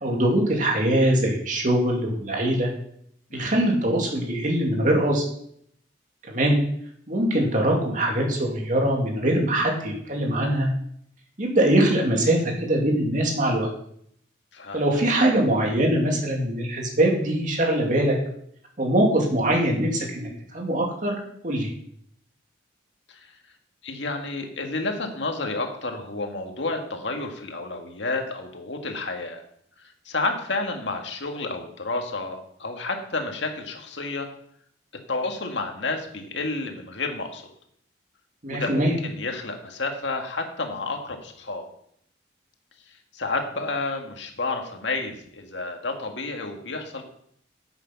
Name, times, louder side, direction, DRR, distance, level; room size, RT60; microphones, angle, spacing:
voice 1, 0.0-2.7 3.3-5.2 6.3-6.6 7.1-10.7 11.4-13.7 14.7-18.2 18.8-21.7 38.4-39.0, right 1 dB, 45° right, 0 dB, 2.5 m, -22 dB
voice 2, 3.3-3.8 14.5-14.8 23.1-23.4 23.8-29.4 29.8-34.3 35.1-37.5 38.5-41.6 42.9-47.0, left 3 dB, 75° left, 4 dB, 1.8 m, -30 dB
9.9 x 8.2 x 5.9 m, 0.69 s
head